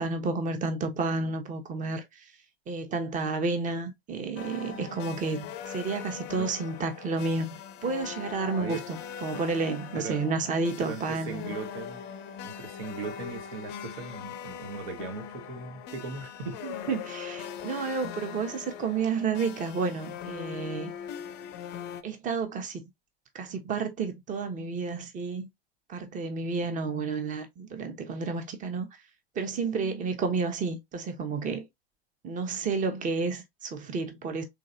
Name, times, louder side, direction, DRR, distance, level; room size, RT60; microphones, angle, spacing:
voice 1, 0.0-2.0 2.7-7.5 7.8-11.5 16.6-20.9 22.0-22.8 23.3-25.5 25.9-28.9 29.3-31.6 32.2-34.4, right 4 dB, 25° right, 1.0 m, -31 dB
sound 1, 4.4-22.0, left 8 dB, 35° left, 0.6 m, -41 dB
voice 2, 10.8-12.0 12.4-16.6, right 4 dB, 60° right, 1.3 m, -38 dB
3.8 x 3.4 x 2.6 m
hypercardioid pair, 100°, 31 cm